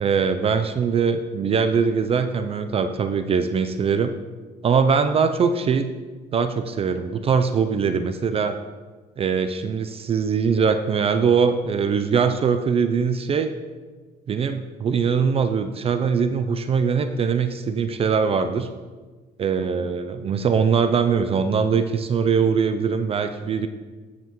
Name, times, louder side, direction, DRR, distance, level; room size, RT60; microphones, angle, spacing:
voice 1, 0.0-4.1 4.6-5.9 6.3-8.5 9.2-13.5 14.3-18.7 19.4-23.7, right 6 dB, 35° right, 8 dB, 0.4 m, -22 dB
9.4 x 5.9 x 3.0 m, 1.3 s
cardioid pair, 110°, 17 cm